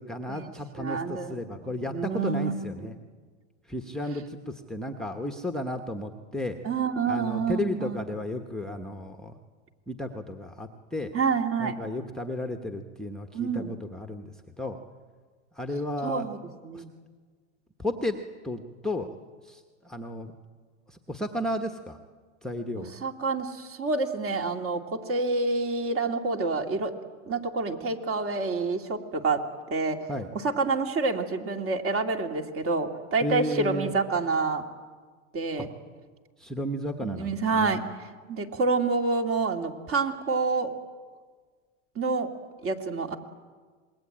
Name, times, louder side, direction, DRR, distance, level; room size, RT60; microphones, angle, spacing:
voice 1, 0.0-3.0 3.7-6.6 7.1-9.3 9.9-11.1 11.6-14.3 14.6-14.8 15.5-16.3 16.7-16.8 17.8-18.2 18.4-19.1 19.4-20.3 20.9-22.0 22.4-22.9 30.1-30.3 33.2-33.9 35.6-35.7 36.4-37.8, left 1 dB, ahead, 4 dB, 1.1 m, -33 dB
voice 2, 0.8-2.9 6.6-8.0 11.1-11.7 13.3-13.7 16.0-16.4 16.6-16.9 22.8-26.9 27.3-29.4 29.7-30.0 30.3-34.7 35.3-35.7 37.0-37.8 38.3-40.7 42.0-42.3 42.6-43.2, right 4 dB, 35° right, 4 dB, 2.5 m, -28 dB
26.5 x 21.5 x 8.8 m, 1.5 s
supercardioid pair, 130°, 37 cm